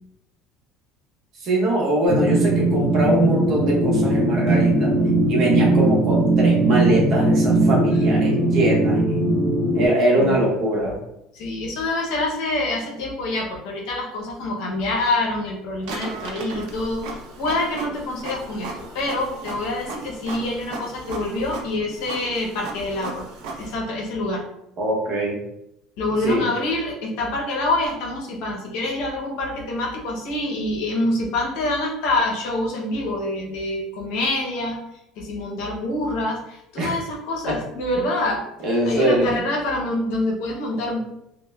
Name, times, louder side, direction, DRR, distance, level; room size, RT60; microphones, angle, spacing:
voice 1, 1.4-4.9 5.3-9.2 9.7-11.0 24.8-25.4 26.2-26.5 36.8-37.0 37.5-37.6 38.0-38.2 38.6-39.4, right 1 dB, 45° right, -3 dB, 0.8 m, -22 dB
sound 1, 2.1-9.9, right 2 dB, 20° left, 0.7 m, -19 dB
voice 2, 11.3-23.3 23.6-24.4 26.0-34.8 35.2-38.4 38.9-41.0, left 2 dB, 70° left, 0 dB, 0.6 m, -26 dB
Printer, 15.8-23.8, right 3 dB, 70° right, 0.4 m, -36 dB
2.9 x 2.0 x 2.2 m, 0.83 s
cardioid pair, 150°, 0 cm